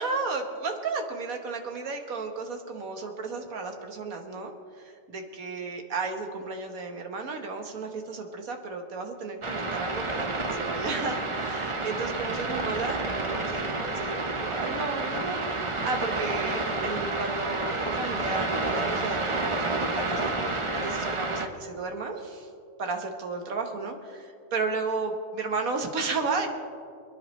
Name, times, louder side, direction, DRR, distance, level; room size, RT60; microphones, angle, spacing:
voice 1, 0.0-15.5 15.8-22.5 22.8-26.5, right 4 dB, 70° right, 4 dB, 1.8 m, -33 dB
sound 1, 9.4-21.5, right 2 dB, 25° right, 0.8 m, -30 dB
27.5 x 10.0 x 3.2 m, 2.3 s
omnidirectional pair, 1.5 m